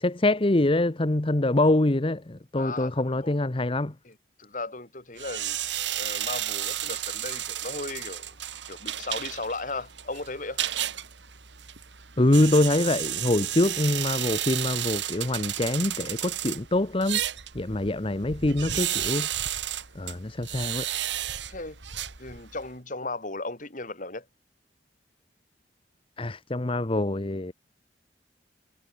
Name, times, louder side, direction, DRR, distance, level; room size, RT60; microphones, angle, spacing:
voice 1, 0.0-3.9 12.2-17.2 17.5-19.3 19.9-20.9 26.2-27.5, left 1 dB, 30° left, 0.9 m, -24 dB
voice 2, 2.5-3.3 4.0-4.1 4.4-5.6 6.0-8.3 8.7-10.6 21.5-21.8 22.2-24.3, left 3 dB, 45° left, 5.8 m, -36 dB
sound 1, 5.2-22.7, right 11 dB, 85° right, 2.4 m, -33 dB
head